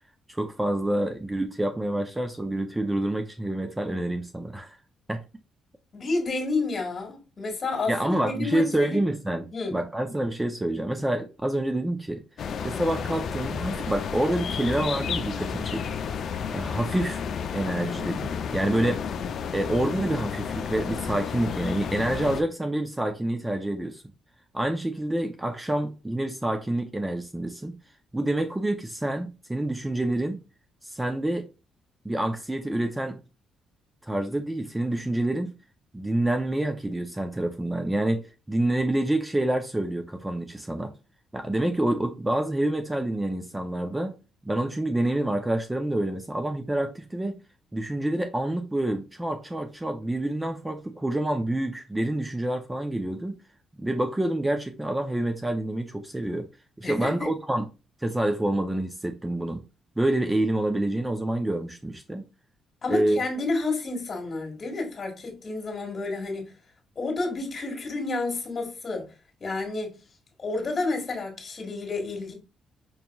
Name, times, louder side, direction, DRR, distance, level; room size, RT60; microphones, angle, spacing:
voice 1, 0.3-4.8 5.1-5.2 7.9-12.2 12.6-15.9 16.5-17.2 17.5-19.1 19.5-24.0 24.5-27.8 28.1-30.4 30.8-31.5 32.0-33.2 34.0-35.5 35.9-40.9 41.3-44.1 44.4-47.4 47.7-53.4 53.8-56.5 56.8-57.6 58.0-59.6 60.0-62.2 62.9-63.2, right 1 dB, 10° right, 0.4 m, -27 dB
voice 2, 5.9-9.0 9.5-9.8 56.8-57.3 62.8-66.5 66.9-69.1 69.4-70.0 70.4-72.3, left 3 dB, 40° left, 1.6 m, -30 dB
sound 1, 12.4-22.4, left 7 dB, 65° left, 0.4 m, -32 dB
5.3 x 2.8 x 2.3 m
cardioid pair, 90°, 0 cm